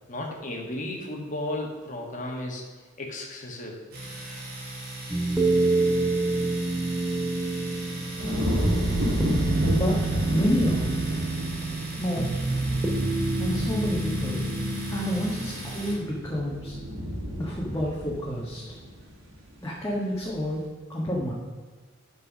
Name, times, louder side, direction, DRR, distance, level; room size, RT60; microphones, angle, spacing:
voice 1, 0.1-2.6 3.0-3.8, left 1 dB, 40° left, 0 dB, 1.8 m, -34 dB
Domestic sounds home sounds, 3.9-15.9, right 2 dB, 50° right, 3.4 m, -39 dB
sound 1, 5.1-17.1 17.4-17.5, right 2 dB, 10° right, 1.0 m, -28 dB
sound 2, 8.2-19.5 19.9-20.4, equal, 85° right, 2.3 m, -31 dB
voice 2, 9.7-10.0 10.3-10.9 12.0-12.3 12.6-12.8 13.4-14.4 14.9-16.8 17.3-18.6 19.6-20.6 20.9-21.3, equal, 15° left, -5 dB, 1.5 m, -29 dB
11.5 x 4.7 x 6.1 m, 1.4 s
head